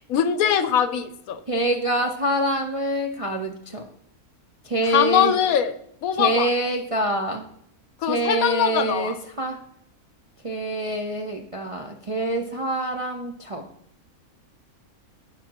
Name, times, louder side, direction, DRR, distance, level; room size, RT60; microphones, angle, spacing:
voice 1, 0.1-1.4 4.8-5.7 6.0-6.5 8.0-9.1, left 9 dB, 70° left, 12 dB, 1.1 m, -22 dB
voice 2, 1.5-3.9 4.7-5.3 6.2-7.4 8.1-9.6 10.4-13.7, right 1 dB, 40° right, 1 dB, 0.5 m, -25 dB
16.5 x 5.7 x 2.9 m, 0.74 s
omnidirectional pair, 1.6 m